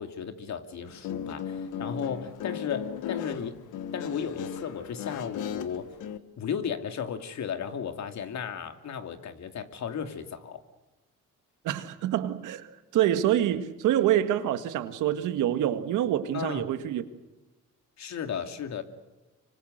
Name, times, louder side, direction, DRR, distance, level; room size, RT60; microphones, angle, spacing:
voice 1, 0.0-3.6 3.9-5.9 6.4-10.6 16.3-16.7 18.0-18.8, left 7 dB, 65° left, 2.6 m, -35 dB
Guitar, 0.9-6.2, left 8 dB, 85° left, 1.6 m, -36 dB
voice 2, 11.6-17.0, right 11 dB, 90° right, 1.9 m, -26 dB
26.5 x 25.0 x 6.6 m
cardioid pair, 90°, 30 cm